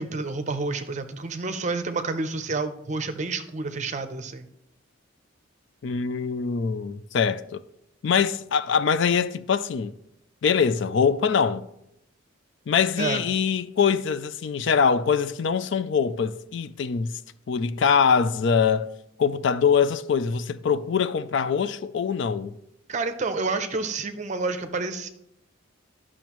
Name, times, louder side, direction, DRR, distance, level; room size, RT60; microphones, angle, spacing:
voice 1, 0.0-4.5 13.0-13.2 22.9-25.1, right 3 dB, 35° right, 0.6 m, -29 dB
voice 2, 5.8-7.6 8.0-9.9 10.4-11.7 12.7-17.2 17.5-18.9 19.2-22.5, left 6 dB, 60° left, 0.4 m, -23 dB
12.0 x 6.2 x 3.0 m
head